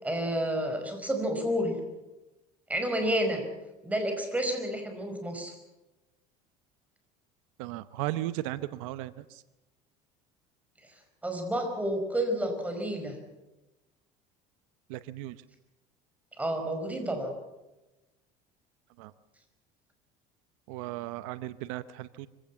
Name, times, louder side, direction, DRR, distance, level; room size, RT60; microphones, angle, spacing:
voice 1, 0.0-1.8 2.7-3.4 3.8-5.5 11.2-13.1 16.4-17.3, right 1 dB, 10° right, 5 dB, 5.0 m, -30 dB
voice 2, 7.6-9.4 14.9-15.4 19.0-19.1 20.7-22.3, right 16 dB, 90° right, 15 dB, 0.9 m, -36 dB
24.5 x 16.5 x 7.4 m, 1.0 s
cardioid pair, 130°, 17 cm